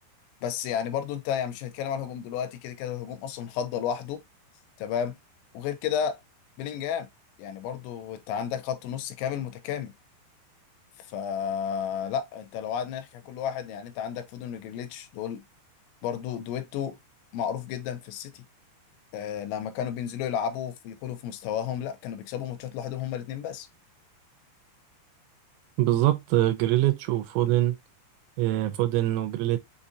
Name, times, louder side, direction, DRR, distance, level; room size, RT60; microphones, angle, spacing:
voice 1, 0.4-4.2 4.8-5.2 5.5-6.2 6.6-7.1 7.4-9.9 11.0-15.4 16.0-17.0 17.3-18.4 19.1-23.7, left 8 dB, 80° left, 3.0 m, -32 dB
voice 2, 25.8-27.8 28.4-29.6, right 15 dB, 85° right, 3.0 m, -24 dB
7.2 x 2.4 x 2.7 m
omnidirectional pair, 5.4 m